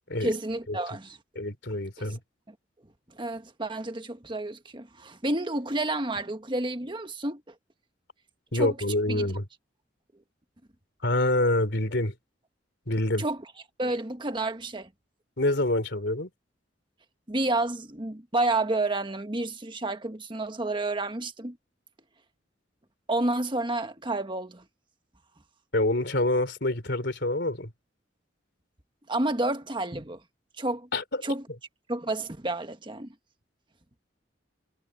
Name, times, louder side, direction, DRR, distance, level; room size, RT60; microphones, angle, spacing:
voice 1, 0.2-1.2 2.0-2.2 3.1-7.5 8.5-8.8 9.1-9.3 13.2-13.4 13.8-14.9 17.3-21.6 23.1-24.6 29.1-30.2 30.6-30.9 31.2-31.4 31.9-33.1, right 2 dB, 25° right, 1.5 m, -30 dB
voice 2, 1.4-2.2 8.5-9.4 11.0-12.1 12.9-13.2 15.4-16.3 25.7-27.7 30.9-31.2, left 1 dB, 65° left, 3.8 m, -26 dB
head